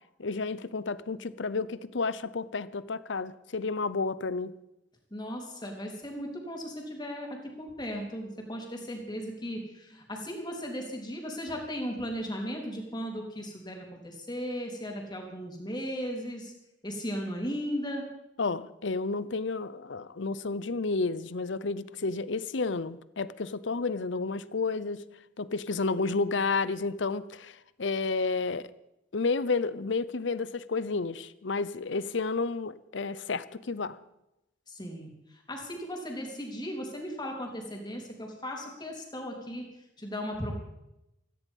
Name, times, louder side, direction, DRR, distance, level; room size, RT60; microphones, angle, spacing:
voice 1, 0.2-4.5 18.4-25.0 25.4-28.7 29.1-34.0, left 4 dB, 70° left, 17 dB, 0.7 m, -31 dB
voice 2, 5.1-7.3 7.6-16.5 16.8-18.1 34.7-35.1 35.5-39.7 40.0-40.6, equal, 25° left, 1 dB, 3.6 m, -36 dB
16.5 x 14.5 x 5.5 m, 0.88 s
head